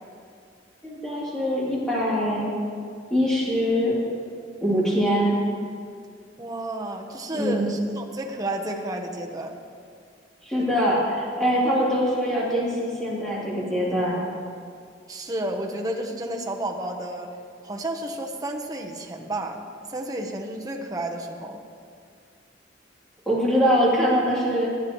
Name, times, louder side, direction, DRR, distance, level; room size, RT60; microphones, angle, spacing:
voice 1, 0.8-2.5 3.1-4.0 4.6-5.4 7.3-7.7 10.4-14.2 23.3-24.7, equal, 5° left, -7 dB, 3.0 m, -23 dB
voice 2, 6.4-9.6 15.1-17.3 17.6-19.6 19.9-21.6, right 1 dB, 20° right, 1 dB, 1.0 m, -31 dB
21.5 x 8.1 x 3.1 m, 2.2 s
head